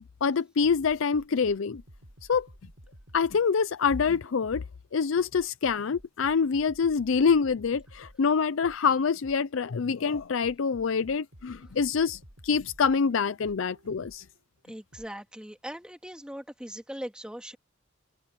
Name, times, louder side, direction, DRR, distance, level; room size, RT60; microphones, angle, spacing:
voice 1, 0.0-1.8 2.3-2.5 3.1-4.6 4.9-14.2, left 5 dB, 70° left, 0.5 m, -26 dB
shimmer and stumble, 0.8-4.8 5.3-9.6 10.1-14.4 14.9-15.1, equal, 75° right, 6.6 m, -53 dB
voice 2, 14.7-17.6, equal, 5° right, 2.2 m, -40 dB
open air
head